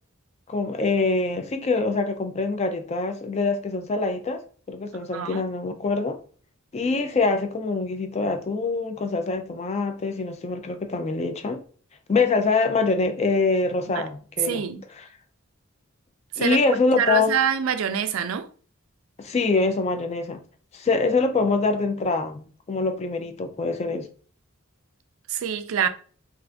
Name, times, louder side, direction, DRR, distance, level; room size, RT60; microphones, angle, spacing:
voice 1, 0.5-4.4 4.7-6.2 6.7-11.6 12.1-14.6 15.0-15.1 16.4-17.4 19.2-20.4 20.7-24.1, left 3 dB, 30° left, 0.4 m, -24 dB
voice 2, 5.1-5.4 13.9-14.1 14.5-14.8 16.4-16.6 17.0-18.5 25.3-25.9, right 8 dB, 75° right, 0.4 m, -25 dB
2.5 x 2.5 x 3.3 m
head